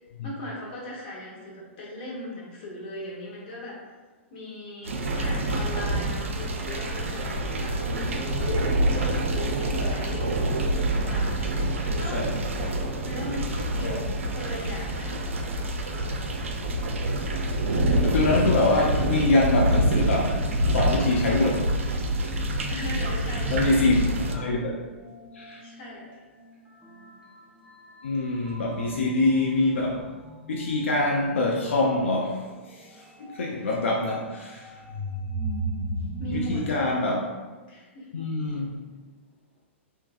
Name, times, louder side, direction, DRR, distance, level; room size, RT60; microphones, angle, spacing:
voice 1, 0.2-3.8 4.3-12.2 13.0-15.2 22.7-23.8 25.6-26.2 36.2-36.9 37.7-38.1, left 1 dB, 50° left, -5 dB, 1.0 m, -38 dB
sound 1, 4.8-24.4, right 1 dB, 75° right, 0.4 m, -26 dB
sound 2, 5.2-20.7, right 2 dB, 40° right, 0.9 m, -41 dB
voice 2, 18.0-20.4 20.7-21.7 23.5-24.0 24.3-24.9 25.3-25.6 28.0-30.1 30.5-34.8 36.3-37.2 38.1-38.8, left 2 dB, 75° left, -2 dB, 0.4 m, -25 dB
sound 3, 22.8-36.6, right 1 dB, 10° right, 0.7 m, -38 dB
3.2 x 2.1 x 2.3 m, 1.3 s
hypercardioid pair, 110°, 7 cm